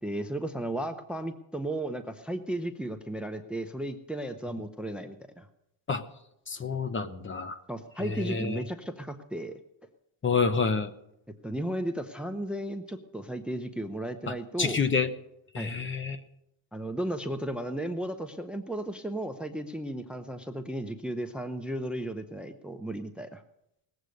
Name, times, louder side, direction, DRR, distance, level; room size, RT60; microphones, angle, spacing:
voice 1, 0.0-5.5 7.7-9.6 11.4-14.8 15.6-15.7 16.7-23.4, right 1 dB, ahead, 8 dB, 0.7 m, -34 dB
voice 2, 6.5-7.6 8.0-8.6 10.2-10.9 14.3-15.1 15.5-16.2, left 5 dB, 25° left, 11 dB, 0.9 m, -28 dB
19.0 x 8.1 x 6.5 m, 0.81 s
cardioid pair, 130°, 45 cm